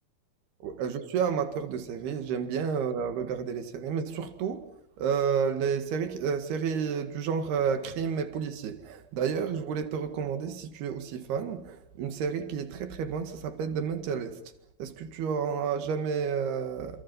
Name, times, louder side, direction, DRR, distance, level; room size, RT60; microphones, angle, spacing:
voice 1, 0.6-14.4 14.8-17.0, right 6 dB, 80° right, 3.9 m, -31 dB
29.5 x 28.0 x 5.4 m
omnidirectional pair, 4.5 m